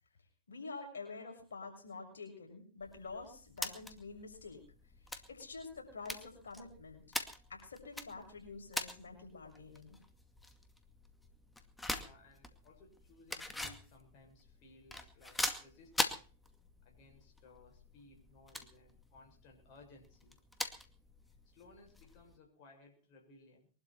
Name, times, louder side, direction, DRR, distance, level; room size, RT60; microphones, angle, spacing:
voice 1, 0.5-4.6 5.3-7.2 7.5-10.0, left 4 dB, 80° left, 2 dB, 6.7 m, -48 dB
sound 1, 2.8-22.3, left 2 dB, 5° left, 2.2 m, -44 dB
voice 2, 11.9-16.2 16.8-20.4 21.4-23.7, left 2 dB, 45° left, 1 dB, 7.0 m, -61 dB
23.0 x 12.5 x 4.4 m, 0.39 s
hypercardioid pair, 110°, 0 cm